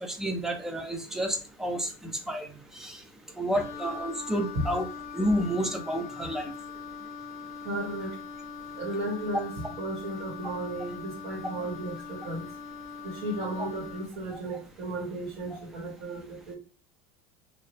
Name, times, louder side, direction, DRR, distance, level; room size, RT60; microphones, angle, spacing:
voice 1, 0.0-1.9 2.3-2.5 2.8-3.0 3.4-4.9 5.1-6.5, equal, 5° right, 4 dB, 0.3 m, -30 dB
Wind instrument woodwind instrument, 3.5-14.2, left 5 dB, 70° left, 0.5 m, -42 dB
voice 2, 7.6-8.2 8.8-12.4 13.0-16.6, right 1 dB, 55° right, -3 dB, 1.6 m, -34 dB
2.7 x 2.7 x 3.2 m, 0.35 s
supercardioid pair, 170°, 13 cm